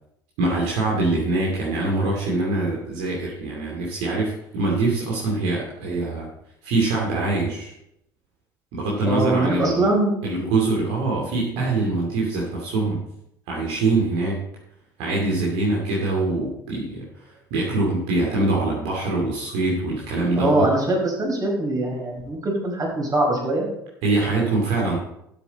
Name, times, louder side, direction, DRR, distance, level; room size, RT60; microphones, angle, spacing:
voice 1, 0.4-6.3 6.6-7.7 8.7-9.9 10.2-13.0 13.5-14.4 15.0-20.7 24.0-25.0, right 2 dB, 65° right, -3 dB, 2.6 m, -24 dB
voice 2, 9.0-10.1 20.3-23.7, right 2 dB, 30° right, -1 dB, 5.1 m, -22 dB
12.0 x 8.2 x 4.2 m, 0.79 s
figure-of-eight pair, 60°, 11 cm